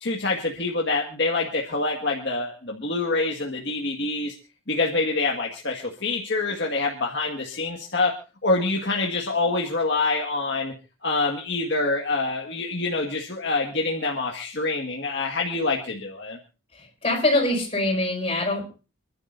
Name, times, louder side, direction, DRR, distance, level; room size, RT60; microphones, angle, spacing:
voice 1, 0.0-4.3 4.7-8.2 8.4-10.7 11.0-16.4, left 3 dB, 55° left, 0 dB, 1.8 m, -26 dB
voice 2, 16.7-18.7, left 1 dB, 30° left, 0 dB, 5.4 m, -24 dB
28.0 x 11.5 x 2.6 m, 0.33 s
head